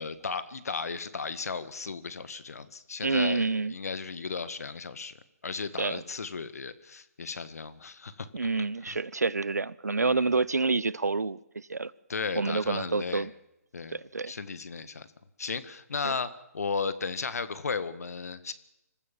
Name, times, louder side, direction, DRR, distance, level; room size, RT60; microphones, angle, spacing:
voice 1, 0.0-5.1 5.4-8.3 8.9-9.0 10.0-10.4 12.1-13.3 13.7-14.0 14.3-15.1 15.4-18.5, left 5 dB, 70° left, 13 dB, 1.8 m, -35 dB
voice 2, 3.0-3.7 5.8-6.0 8.3-11.9 12.3-13.3 13.9-14.3 16.0-16.1, right 3 dB, 85° right, 21 dB, 0.9 m, -28 dB
26.0 x 15.0 x 7.5 m, 0.89 s
figure-of-eight pair, 140°, 9 cm